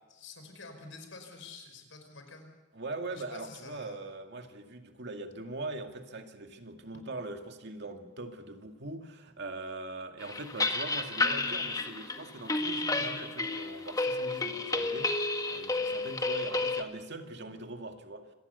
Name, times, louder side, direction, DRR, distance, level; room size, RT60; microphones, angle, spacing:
voice 1, 0.1-2.5 3.1-4.0, left 3 dB, 75° left, 5 dB, 5.4 m, -48 dB
voice 2, 2.7-18.3, right 2 dB, 60° right, 5 dB, 2.2 m, -41 dB
sound 1, 10.2-16.8, left 2 dB, 20° left, 1.5 m, -31 dB
26.0 x 19.0 x 6.9 m, 1.2 s
head